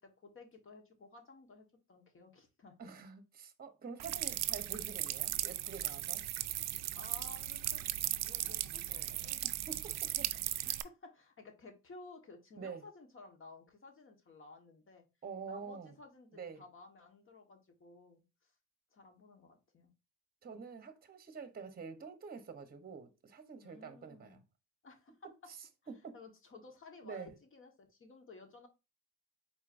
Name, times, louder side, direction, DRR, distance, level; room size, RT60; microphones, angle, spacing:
voice 1, 0.0-2.7 7.0-8.0 8.2-9.6 10.6-15.0 15.5-18.5 18.9-19.9 23.6-24.4 24.8-25.3 26.1-28.7, left 3 dB, 45° left, 1.4 m, -55 dB
voice 2, 2.8-6.2 9.7-10.3 12.6-12.8 15.2-15.9 16.3-16.6 20.4-24.4 25.5-25.6 26.0-26.1 27.0-27.3, right 5 dB, 30° right, 0.9 m, -47 dB
sound 1, 4.0-10.8, right 13 dB, 60° right, 0.5 m, -37 dB
4.5 x 4.1 x 2.6 m
cardioid pair, 90°, 30 cm